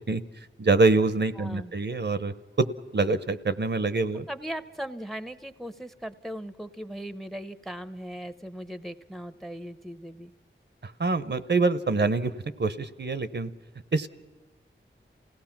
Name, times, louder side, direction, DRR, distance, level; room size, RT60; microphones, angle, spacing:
voice 1, 0.6-2.7 2.9-4.3 10.8-12.3 12.6-13.5 13.9-14.1, right 3 dB, 55° right, 12 dB, 0.8 m, -25 dB
voice 2, 1.4-1.7 4.3-10.3, equal, ahead, 12 dB, 0.8 m, -38 dB
28.0 x 17.0 x 5.9 m, 1.2 s
wide cardioid pair, 65°, 21 cm